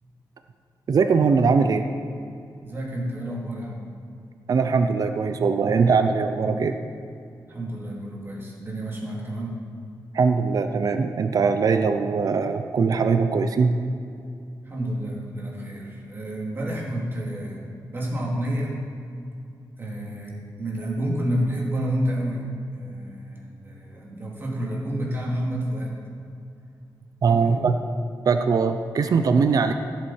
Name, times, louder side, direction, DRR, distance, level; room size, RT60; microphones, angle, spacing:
voice 1, 0.9-1.9 4.5-6.8 10.1-13.7 27.2-27.8 28.3-29.7, right 5 dB, 50° right, 8 dB, 0.6 m, -21 dB
voice 2, 2.6-3.8 7.5-9.6 14.6-17.6 17.9-18.8 19.8-22.5 22.7-26.0 27.3-27.7, equal, 30° right, -3 dB, 2.4 m, -29 dB
15.5 x 7.5 x 4.4 m, 2.5 s
wide cardioid pair, 155°, 8 cm